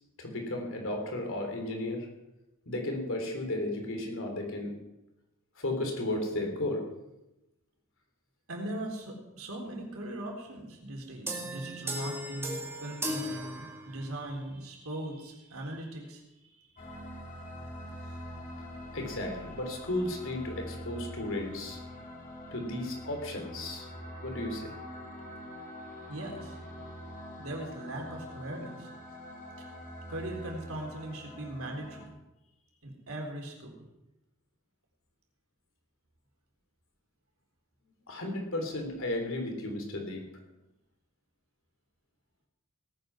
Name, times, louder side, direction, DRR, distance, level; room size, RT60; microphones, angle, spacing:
voice 1, 0.2-2.1 2.7-4.8 5.6-6.8 18.6-18.7 18.9-21.8 22.5-23.9 24.2-24.7 38.1-40.2, left 1 dB, 65° left, 3 dB, 3.6 m, -34 dB
voice 2, 8.5-16.8 17.9-18.2 26.1-26.6 27.4-28.9 29.6-29.7 30.1-32.0 32.8-33.9, right 1 dB, 70° right, 1 dB, 3.9 m, -40 dB
sound 1, 11.3-14.2, equal, 10° right, 2.3 m, -37 dB
sound 2, 16.8-32.1, equal, 40° left, 2.9 m, -44 dB
18.5 x 9.3 x 6.2 m, 0.94 s
head